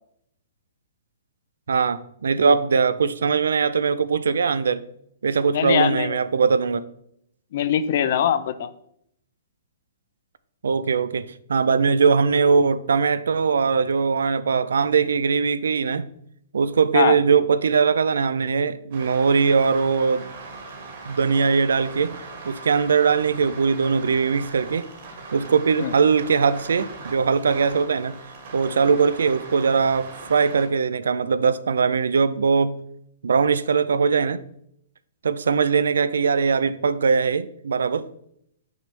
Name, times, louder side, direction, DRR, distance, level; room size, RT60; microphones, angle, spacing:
voice 1, 1.7-4.8 5.2-6.8 10.6-11.2 11.5-16.1 16.5-20.3 21.1-22.2 22.4-24.9 25.3-28.2 28.5-32.8 33.2-34.4 35.2-38.1, right 5 dB, 90° right, 0.4 m, -21 dB
voice 2, 5.5-6.2 7.5-8.7 16.9-17.2 25.8-25.9, left 9 dB, 55° left, 0.5 m, -22 dB
sound 1, 18.9-30.7, right 3 dB, 55° right, 1.8 m, -40 dB
6.3 x 5.2 x 3.3 m
hypercardioid pair, 150°, 0 cm